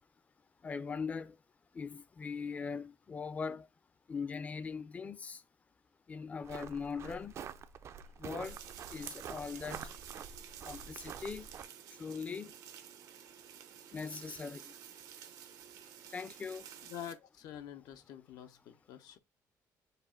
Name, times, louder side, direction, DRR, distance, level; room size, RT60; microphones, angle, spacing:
voice 1, 0.6-1.3 1.8-3.7 4.1-5.4 6.1-7.3 8.2-8.6 8.9-9.9 10.6-11.5 12.0-12.5 13.9-14.6 16.1-16.7, left 5 dB, 20° left, 0.4 m, -40 dB
sound 1, 6.4-11.6, right 7 dB, 45° right, 0.4 m, -47 dB
sound 2, 8.4-17.1, right 9 dB, 80° right, 0.8 m, -51 dB
voice 2, 16.9-19.2, left 10 dB, 90° left, 0.7 m, -47 dB
4.8 x 2.5 x 4.2 m
cardioid pair, 150°, 6 cm